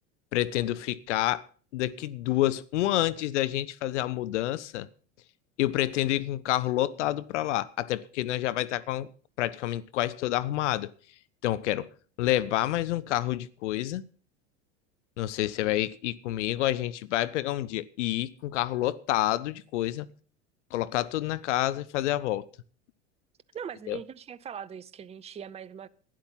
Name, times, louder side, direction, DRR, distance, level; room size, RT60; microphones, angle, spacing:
voice 1, 0.3-1.4 1.7-4.9 5.6-9.1 9.4-10.9 11.4-11.9 12.2-14.0 15.2-20.1 20.7-22.5 23.9-24.0, left 14 dB, 70° left, 0.7 m, -28 dB
voice 2, 23.5-25.9, right 8 dB, 15° right, 0.6 m, -41 dB
12.0 x 10.5 x 5.6 m
hypercardioid pair, 80°, 37 cm